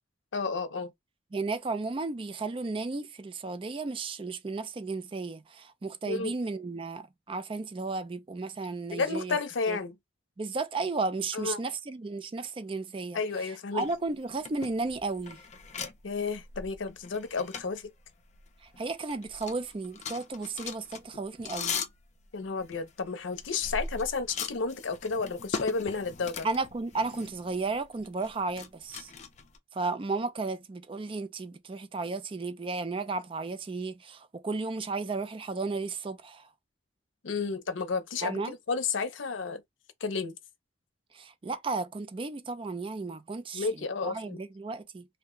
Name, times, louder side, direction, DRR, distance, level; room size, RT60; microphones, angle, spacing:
voice 1, 0.3-0.9 6.1-6.3 8.9-9.9 11.3-11.6 13.1-13.9 16.0-17.9 22.3-26.5 37.2-39.6 40.0-40.4 43.5-44.4, left 4 dB, 85° left, 0.6 m, -32 dB
voice 2, 1.3-9.4 9.7-9.8 10.4-15.4 18.8-21.8 26.4-29.1 29.7-36.5 38.2-38.5 41.1-45.1, right 3 dB, 30° right, 0.4 m, -34 dB
sound 1, 13.8-18.8 19.1-29.6, left 5 dB, 40° left, 0.5 m, -40 dB
2.6 x 2.1 x 3.6 m
head